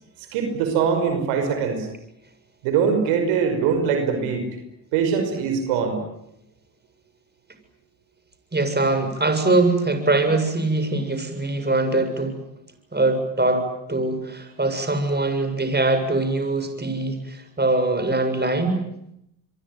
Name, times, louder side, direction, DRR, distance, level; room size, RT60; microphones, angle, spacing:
voice 1, 0.3-1.9 2.6-4.5 4.9-6.0, right 6 dB, 90° right, 6 dB, 5.6 m, -22 dB
voice 2, 8.5-12.4 12.9-18.8, right 2 dB, 20° right, 8 dB, 7.3 m, -22 dB
27.5 x 23.0 x 9.4 m, 0.79 s
supercardioid pair, 55°, 48 cm